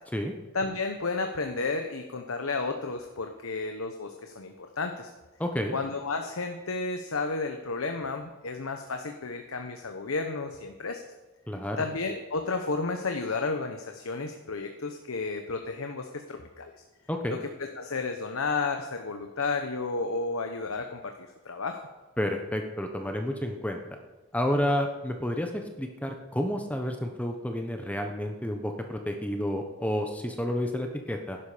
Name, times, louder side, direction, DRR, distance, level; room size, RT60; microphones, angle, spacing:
voice 1, 0.5-5.1 5.7-11.0 11.8-16.7 17.3-21.8, left 3 dB, 90° left, 5 dB, 1.1 m, -32 dB
voice 2, 5.4-5.8 11.5-11.9 17.1-17.4 22.2-23.8 24.3-31.4, equal, 5° left, 4 dB, 1.0 m, -30 dB
16.0 x 11.5 x 5.1 m, 1.1 s
head